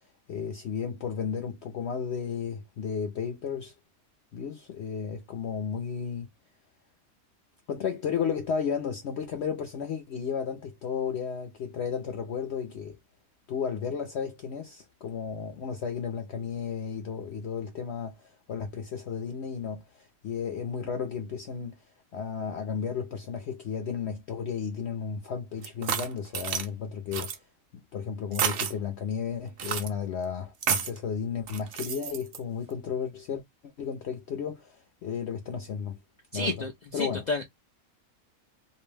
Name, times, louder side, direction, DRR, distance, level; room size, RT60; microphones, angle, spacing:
voice 1, 0.3-3.7 4.3-6.3 7.7-13.0 13.5-21.8 22.1-27.3 27.9-36.0 36.3-36.7 36.9-37.2, left 6 dB, 60° left, 0.7 m, -33 dB
sound 1, 25.6-26.7 27.1-27.4 28.3-28.7 29.6-29.9 30.6-31.0 31.5-32.4, right 8 dB, 70° right, 0.5 m, -30 dB
voice 2, 36.3-36.7 37.0-37.6, left 2 dB, 80° left, 0.4 m, -30 dB
2.6 x 2.1 x 3.1 m
omnidirectional pair, 1.5 m